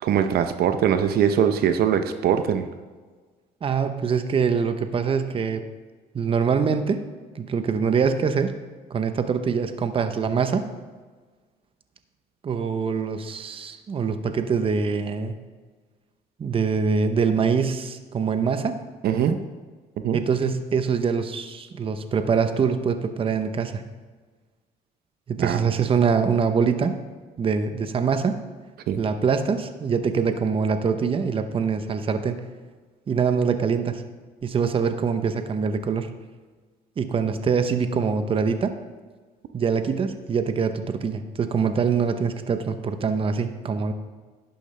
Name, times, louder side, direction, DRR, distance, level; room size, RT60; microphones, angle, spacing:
voice 1, 0.0-2.7 19.0-19.3 20.0-20.2 25.4-25.6 28.9-29.0, right 8 dB, 65° right, 9 dB, 0.7 m, -21 dB
voice 2, 3.6-5.7 6.1-7.0 7.3-8.6 8.9-10.7 12.4-15.3 16.4-18.8 19.1-19.4 20.1-23.8 25.3-27.0 27.4-28.4 29.0-32.4 33.1-34.0 34.4-36.1 37.0-38.8 39.5-43.9, right 6 dB, 30° right, 9 dB, 0.8 m, -24 dB
11.0 x 10.5 x 3.3 m, 1.4 s
cardioid pair, 115°, 17 cm